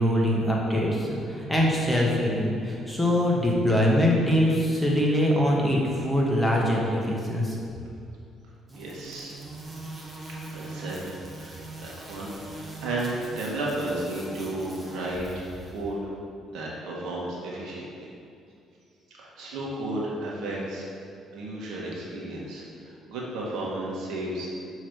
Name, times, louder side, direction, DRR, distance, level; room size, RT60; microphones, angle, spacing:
voice 1, 0.0-7.6, equal, ahead, -4 dB, 1.2 m, -23 dB
sound 1, 8.7-15.8, right 2 dB, 20° right, 1.0 m, -41 dB
voice 2, 8.7-9.4 10.5-16.1 16.5-17.9 19.2-20.9 21.3-24.5, right 1 dB, 80° right, -4 dB, 1.4 m, -33 dB
6.8 x 3.2 x 4.6 m, 2.4 s
cardioid pair, 95°, 0 cm